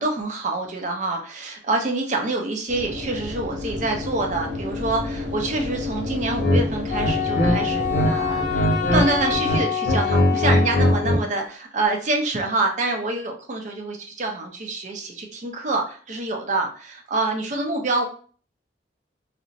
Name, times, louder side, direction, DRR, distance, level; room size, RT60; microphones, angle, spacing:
voice 1, 0.0-18.1, right 2 dB, 45° right, 2 dB, 0.6 m, -26 dB
sound 1, 2.7-9.4, left 2 dB, 65° right, 1.1 m, -31 dB
sound 2, 6.4-6.6 7.0-8.1 8.4-9.0 9.3-11.2, equal, 85° left, 0.9 m, -20 dB
Wind instrument woodwind instrument, 6.9-11.2, left 7 dB, 45° left, 0.5 m, -27 dB
2.5 x 2.0 x 3.9 m, 0.42 s
head